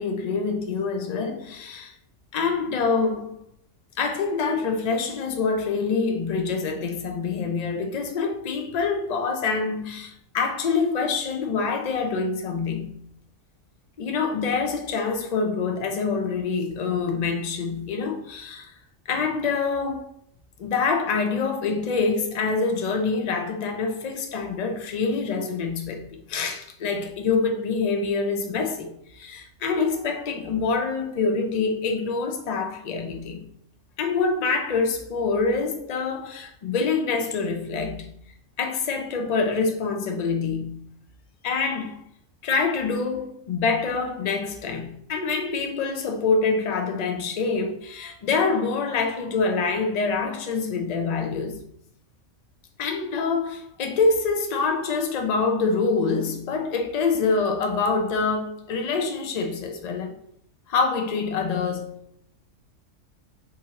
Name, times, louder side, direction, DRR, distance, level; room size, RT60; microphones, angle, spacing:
voice 1, 0.0-1.9 2.3-3.4 4.0-13.0 14.0-18.7 19.1-20.1 20.6-33.5 34.0-38.2 38.6-40.9 41.4-42.1 42.4-51.7 52.8-60.2 60.7-62.2, left 4 dB, 45° left, 0.6 m, -26 dB
4.3 x 2.8 x 3.6 m
omnidirectional pair, 1.3 m